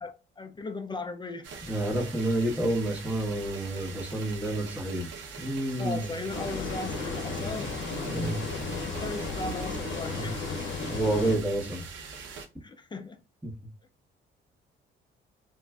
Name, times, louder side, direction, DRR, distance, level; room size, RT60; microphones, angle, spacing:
voice 1, 0.0-1.8 5.8-7.8 8.9-10.4 12.6-13.2, left 3 dB, 25° left, 0.3 m, -37 dB
sound 1, 1.4-12.5, right 5 dB, 70° right, 0.7 m, -43 dB
voice 2, 1.7-5.1 5.4-6.1 8.1-8.4 10.1-10.3 10.9-11.8 13.4-13.5, right 1 dB, 5° right, 1.0 m, -29 dB
sound 2, 6.3-11.4, left 4 dB, 75° left, 0.7 m, -34 dB
3.3 x 2.4 x 2.2 m
cardioid pair, 90°, 20 cm